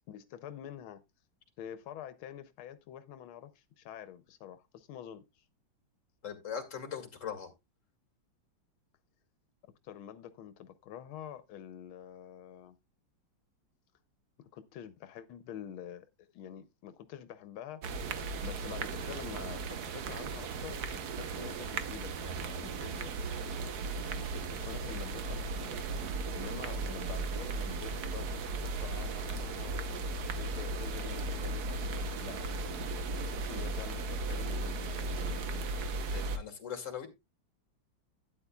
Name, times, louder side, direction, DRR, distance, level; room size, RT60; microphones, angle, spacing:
voice 1, 0.1-1.0 1.6-5.5 9.8-12.8 14.4-16.0 16.3-17.8 18.4-23.1 24.0-25.9 26.3-29.8 30.3-33.0 33.3-35.7, left 10 dB, 85° left, 1.6 m, -47 dB
voice 2, 6.2-7.5 36.1-37.1, left 7 dB, 40° left, 2.1 m, -40 dB
sound 1, 17.8-36.4, right 3 dB, 60° right, 1.3 m, -36 dB
12.0 x 9.5 x 2.3 m
omnidirectional pair, 2.2 m